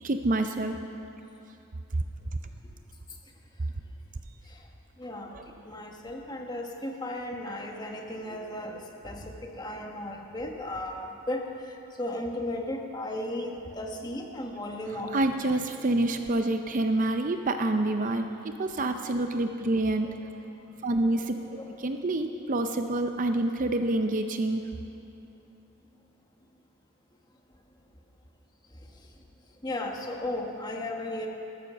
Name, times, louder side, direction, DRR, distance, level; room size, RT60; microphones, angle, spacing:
voice 1, 0.0-0.7 5.3-5.4 15.1-20.1 20.8-21.3 21.8-24.6, right 2 dB, 35° right, 7 dB, 0.5 m, -27 dB
voice 2, 5.0-5.4 5.6-15.1 19.0-19.2 20.0-20.2 21.4-22.2 29.6-31.3, left 1 dB, 20° left, 1 dB, 1.2 m, -36 dB
13.5 x 12.5 x 6.7 m, 2.9 s
head